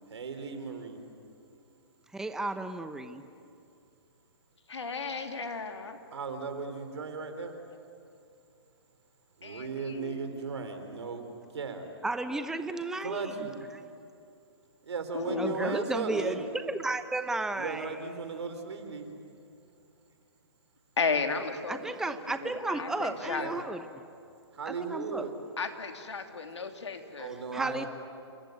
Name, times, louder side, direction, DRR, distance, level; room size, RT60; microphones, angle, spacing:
voice 1, 0.1-1.0 6.1-7.5 9.4-11.3 11.5-11.8 13.0-13.5 14.9-16.4 17.5-19.1 23.2-23.6 24.5-25.3 27.2-27.9, right 5 dB, 75° right, 7 dB, 4.1 m, -36 dB
voice 2, 2.1-3.2 12.0-13.3 15.4-18.1 21.7-23.8 24.6-25.3 27.2-27.9, right 2 dB, 5° right, 10 dB, 0.9 m, -33 dB
voice 3, 4.7-6.0 9.4-10.3 15.1-15.8 21.0-21.8 22.0-22.2 22.4-23.5 25.6-27.3, left 4 dB, 85° left, 6 dB, 2.8 m, -34 dB
28.5 x 21.0 x 9.4 m, 2.5 s
hypercardioid pair, 135°, 14 cm